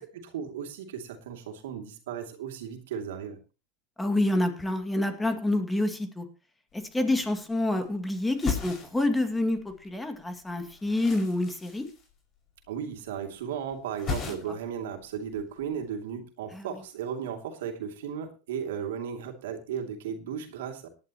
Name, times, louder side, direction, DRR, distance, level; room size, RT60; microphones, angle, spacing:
voice 1, 0.0-3.4 12.7-20.9, right 8 dB, 80° right, 4 dB, 2.7 m, -35 dB
voice 2, 4.0-6.3 6.7-11.9 16.5-16.8, left 1 dB, 10° left, 7 dB, 2.2 m, -28 dB
sound 1, 6.7-6.8 7.0-7.9 8.2-9.9 10.2-12.7 12.9-13.5 13.7-14.7 15.0-15.8, left 5 dB, 35° left, 6.0 m, -37 dB
18.0 x 11.0 x 3.0 m, 0.32 s
supercardioid pair, 110°, 0 cm